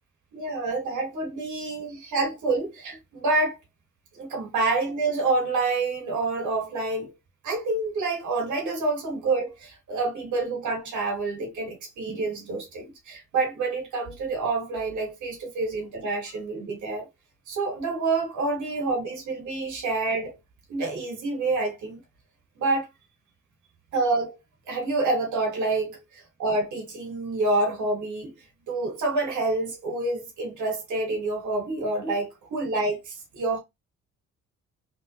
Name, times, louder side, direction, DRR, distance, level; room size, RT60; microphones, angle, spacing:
voice 1, 0.3-3.6 4.1-7.1 7.4-17.1 17.5-20.3 20.7-22.0 22.6-22.9 23.9-24.4 24.7-28.3 28.7-33.6, right 3 dB, 75° right, 2.5 m, -27 dB
4.3 x 3.6 x 3.2 m
cardioid pair, 90°, 30 cm